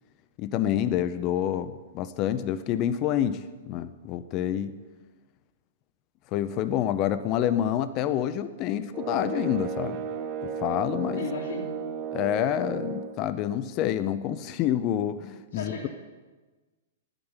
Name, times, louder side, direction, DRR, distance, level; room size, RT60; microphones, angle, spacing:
voice 1, 0.4-3.4 3.7-4.7 6.3-10.0 10.4-11.2 12.1-15.7, left 11 dB, 30° left, 12 dB, 0.6 m, -27 dB
sound 1, 8.9-13.2, right 6 dB, 30° right, 1.2 m, -34 dB
voice 2, 11.2-11.8 15.5-15.9, left 5 dB, 80° left, -3 dB, 2.3 m, -35 dB
10.5 x 8.9 x 9.7 m, 1.3 s
hypercardioid pair, 165°, 0 cm